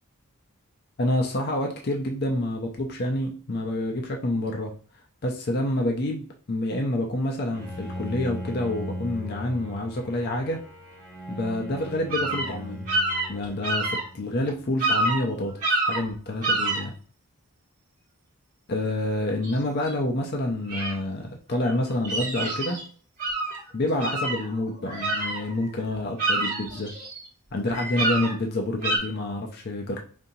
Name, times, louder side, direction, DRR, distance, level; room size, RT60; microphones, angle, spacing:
voice 1, 1.0-4.7 5.2-10.6 11.3-12.9 13.3-16.9 18.7-22.8 23.7-26.9 27.5-30.0, left 1 dB, 45° left, 1 dB, 0.5 m, -28 dB
Bowed string instrument, 7.5-14.6, left 1 dB, 5° left, 1.1 m, -38 dB
sound 1, 12.1-12.5 12.9-14.0 14.5-14.6 14.8-15.2 15.6-16.1 16.4-16.8 19.4-19.6 19.9-20.0 20.7-20.9 21.7-22.8 23.2-23.6 24.0-25.7 26.0-27.2 27.7-28.3 28.8-29.0, right 2 dB, 35° right, 1.4 m, -27 dB
5.2 x 2.7 x 2.6 m, 0.42 s
head